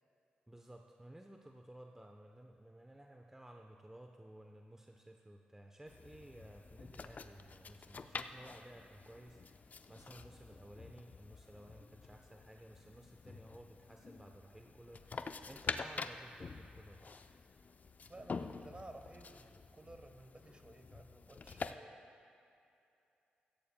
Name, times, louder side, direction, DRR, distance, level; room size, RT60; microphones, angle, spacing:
voice 1, 0.5-17.2, right 1 dB, 10° right, 2 dB, 0.8 m, -56 dB
sound 1, 5.9-21.7, left 4 dB, 45° left, 0.6 m, -47 dB
voice 2, 18.1-22.0, right 2 dB, 30° right, 6 dB, 1.2 m, -55 dB
16.5 x 15.5 x 2.3 m, 2.7 s
supercardioid pair, 45°, 4 cm